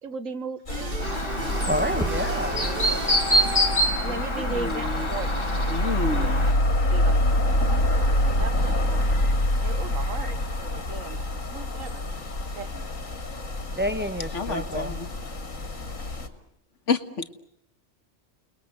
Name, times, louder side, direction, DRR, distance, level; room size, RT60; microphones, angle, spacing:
voice 1, 0.0-1.1 2.5-2.8 3.3-3.6 4.0-5.5 5.8-6.3 6.6-7.2 8.0-8.1 8.4-9.3 9.6-11.2 11.5-12.0 12.5-12.9, right 5 dB, 85° right, 1.8 m, -37 dB
sound 1, 0.7-16.3, left 1 dB, 90° left, 3.1 m, -26 dB
sound 2, 0.7-4.1, right 2 dB, 45° right, 2.2 m, -34 dB
Chirp tweet, 1.0-6.5, equal, 20° left, 2.1 m, -27 dB
voice 2, 1.6-2.7 13.8-15.0, equal, 10° right, 1.6 m, -28 dB
voice 3, 4.0-5.1 5.7-6.5 14.3-15.1 16.9-17.3, left 4 dB, 65° left, 1.9 m, -30 dB
29.5 x 21.0 x 9.5 m
omnidirectional pair, 1.3 m